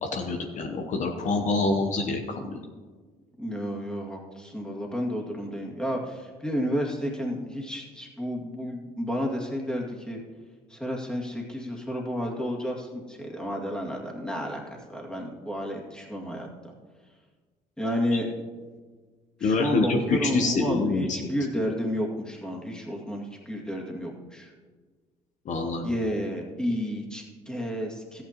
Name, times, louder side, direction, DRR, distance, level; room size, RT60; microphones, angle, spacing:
voice 1, 0.0-2.6 18.1-18.2 19.4-21.3 25.5-25.9, left 3 dB, 50° left, 4 dB, 0.9 m, -26 dB
voice 2, 3.4-10.2 10.7-16.7 17.8-18.3 19.4-24.5 25.8-28.2, equal, 5° left, -1 dB, 2.1 m, -31 dB
13.5 x 9.2 x 3.0 m, 1.5 s
supercardioid pair, 85°, 16 cm